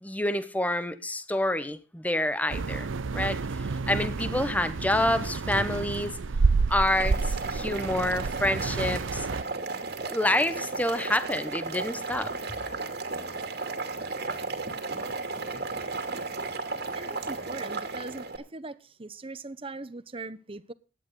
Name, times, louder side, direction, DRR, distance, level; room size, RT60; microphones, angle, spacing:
voice 1, 0.0-2.9 3.1-6.1 6.7-9.3 10.1-12.3, left 1 dB, 10° left, 1.0 m, -28 dB
sound 1, 2.5-9.4, right 4 dB, 85° right, 0.6 m, -29 dB
Boiling, 6.8-18.4, right 3 dB, 55° right, 2.6 m, -34 dB
voice 2, 16.9-20.7, right 3 dB, 30° right, 0.9 m, -40 dB
17.0 x 11.0 x 3.8 m
head